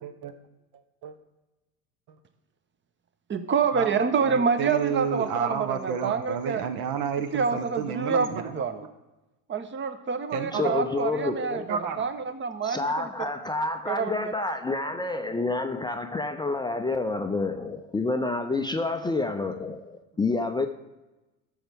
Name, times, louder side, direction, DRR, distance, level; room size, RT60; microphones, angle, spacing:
voice 1, 0.0-0.3 1.0-1.1 3.7-8.6 10.3-10.8 11.2-12.1, right 7 dB, 55° right, 9 dB, 1.0 m, -31 dB
voice 2, 3.3-6.6 7.3-8.8 9.5-13.3 13.9-14.3, right 5 dB, 25° right, 10 dB, 0.9 m, -27 dB
voice 3, 10.5-11.6 12.6-20.7, left 3 dB, 10° left, 5 dB, 0.5 m, -28 dB
13.0 x 6.3 x 3.5 m, 1.0 s
hypercardioid pair, 75°, 42 cm